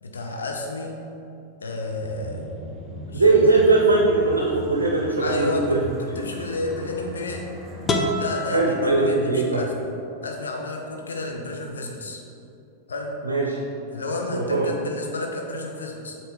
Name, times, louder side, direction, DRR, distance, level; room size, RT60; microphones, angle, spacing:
voice 1, 0.0-1.0 1.6-2.5 3.1-3.2 3.5-3.6 5.2-7.5 8.1-9.9 10.2-12.2 12.9-13.2 13.9-16.2, left 2 dB, 70° left, 1 dB, 0.6 m, -31 dB
sound 1, 2.0-10.1, equal, 15° right, 1.1 m, -39 dB
voice 2, 3.1-5.8 8.5-9.6 13.2-13.6 14.3-14.7, right 3 dB, 75° right, 0 dB, 0.6 m, -20 dB
sound 2, 7.9-9.8, left 1 dB, 25° left, 0.6 m, -28 dB
7.5 x 3.2 x 4.1 m, 2.7 s
figure-of-eight pair, 90°, 0 cm